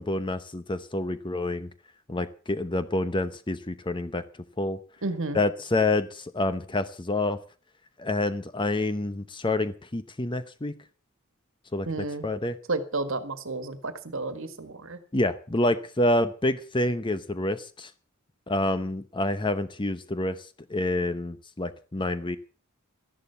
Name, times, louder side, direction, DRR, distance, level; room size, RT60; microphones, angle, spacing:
voice 1, 0.0-1.7 2.1-4.2 4.6-4.8 5.3-7.4 8.0-10.7 11.7-11.9 12.2-12.6 15.1-17.9 18.5-22.4, left 2 dB, 25° left, 12 dB, 0.9 m, -27 dB
voice 2, 5.0-5.4 11.9-12.3 12.7-15.0, right 3 dB, 65° right, 11 dB, 1.7 m, -31 dB
13.5 x 11.5 x 6.9 m, 0.39 s
head